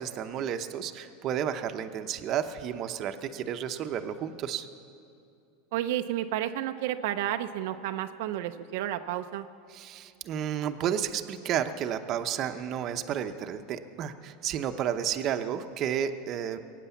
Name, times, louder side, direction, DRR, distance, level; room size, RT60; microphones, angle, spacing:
voice 1, 0.0-4.7 9.7-16.6, right 9 dB, 40° right, 9 dB, 0.8 m, -32 dB
voice 2, 5.7-9.5, right 12 dB, 70° right, 7 dB, 0.5 m, -31 dB
22.0 x 9.2 x 7.2 m, 2.6 s
supercardioid pair, 145°, 0 cm